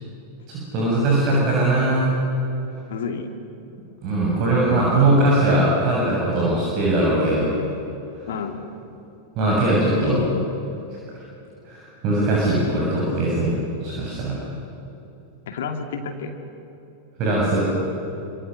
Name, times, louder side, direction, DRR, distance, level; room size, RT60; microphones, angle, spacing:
voice 1, 0.5-2.1 4.0-7.5 9.4-10.2 11.7-14.4 17.2-17.7, right 2 dB, 40° right, -4 dB, 7.1 m, -20 dB
voice 2, 2.9-3.3 8.3-8.6 10.0-10.5 15.5-16.3, left 5 dB, 60° left, 5 dB, 2.6 m, -29 dB
28.0 x 26.5 x 6.6 m, 2.9 s
figure-of-eight pair, 90°, 0 cm